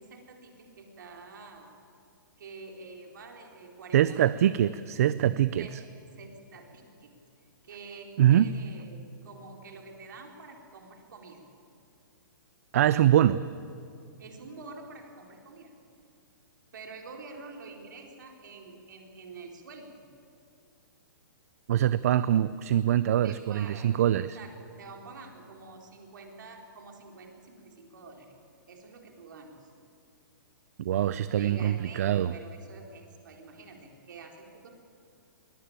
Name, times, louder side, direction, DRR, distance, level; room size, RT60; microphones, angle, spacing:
voice 1, 0.0-1.7 2.4-4.5 5.6-5.9 6.2-7.2 7.6-11.5 14.2-15.7 16.7-20.0 23.2-28.4 28.7-29.7 31.3-34.7, right 4 dB, 65° right, 2 dB, 4.2 m, -47 dB
voice 2, 3.9-5.7 8.2-8.5 12.7-13.4 21.7-24.4 30.8-32.3, right 11 dB, 45° right, 16 dB, 0.5 m, -23 dB
22.0 x 19.5 x 8.9 m, 2.4 s
hypercardioid pair, 170°, 11 cm